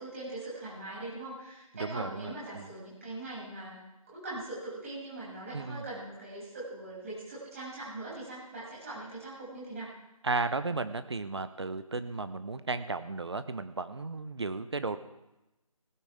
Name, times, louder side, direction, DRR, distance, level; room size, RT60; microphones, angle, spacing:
voice 1, 0.0-3.8 4.1-9.9, right 2 dB, 25° right, -7 dB, 7.1 m, -41 dB
voice 2, 1.7-2.7 5.5-5.8 10.2-15.0, right 3 dB, 50° right, 11 dB, 1.0 m, -34 dB
18.5 x 16.0 x 3.6 m, 0.97 s
figure-of-eight pair, 160°, 19 cm